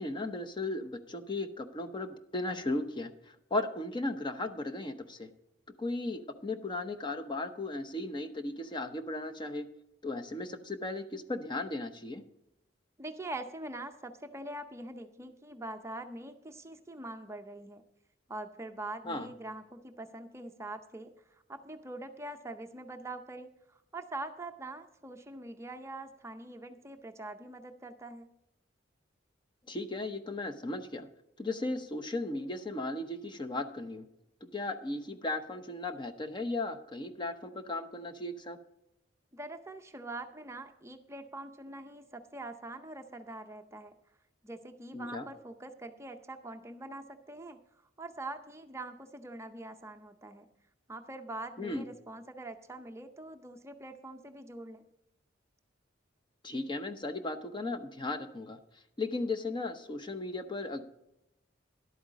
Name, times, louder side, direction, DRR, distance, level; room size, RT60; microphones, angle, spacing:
voice 1, 0.0-5.3 5.8-9.7 10.0-12.2 19.0-19.3 29.7-31.1 31.4-34.1 34.4-38.6 44.9-45.3 51.6-51.8 56.4-58.6 59.0-60.8, left 2 dB, 25° left, 9 dB, 0.7 m, -36 dB
voice 2, 13.0-17.8 18.3-28.3 39.3-43.9 44.4-50.5 50.9-54.8, right 2 dB, 15° right, 6 dB, 0.6 m, -44 dB
11.5 x 8.6 x 5.1 m, 0.83 s
head